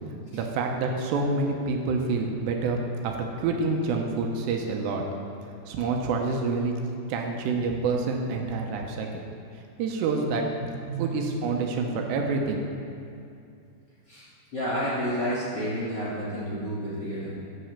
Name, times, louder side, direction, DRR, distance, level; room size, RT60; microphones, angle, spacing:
voice 1, 0.3-2.8 3.0-5.0 5.7-6.8 7.1-9.2 9.8-10.4 11.0-12.7, right 4 dB, 90° right, 2 dB, 3.2 m, -27 dB
voice 2, 10.9-11.2 14.1-14.3 14.5-17.4, equal, 30° left, -10 dB, 2.9 m, -30 dB
11.5 x 6.2 x 7.3 m, 2.5 s
omnidirectional pair, 4.9 m